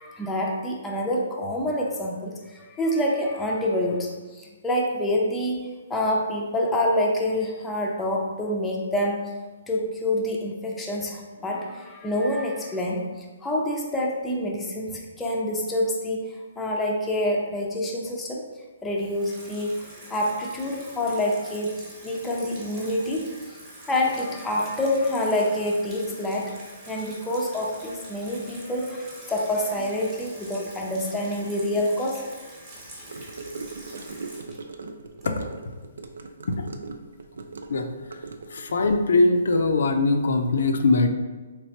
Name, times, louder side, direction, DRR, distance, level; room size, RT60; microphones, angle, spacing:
voice 1, 0.0-9.3 9.7-18.4 18.8-23.6 23.9-26.6 26.9-32.3, left 1 dB, 10° left, -2 dB, 0.4 m, -27 dB
Water tap faucet / Sink (filling or washing), 19.0-35.7, right 1 dB, 25° right, 0.9 m, -45 dB
Gurgling / Car passing by / Sink (filling or washing), 33.1-38.8, right 3 dB, 85° right, 0.3 m, -39 dB
voice 2, 37.7-38.2 38.5-41.1, left 3 dB, 70° left, 5 dB, 0.3 m, -22 dB
3.2 x 3.1 x 2.8 m, 1.3 s
hypercardioid pair, 155°, 0 cm